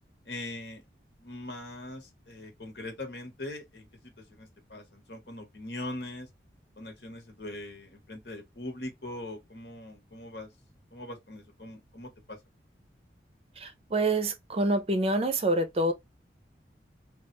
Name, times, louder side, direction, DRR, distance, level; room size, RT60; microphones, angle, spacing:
voice 1, 0.3-0.8 1.2-6.3 6.8-10.5 10.9-12.4, left 1 dB, 70° left, 1.2 m, -41 dB
voice 2, 13.6-15.9, right 1 dB, 35° right, 0.5 m, -27 dB
3.3 x 2.3 x 3.0 m
head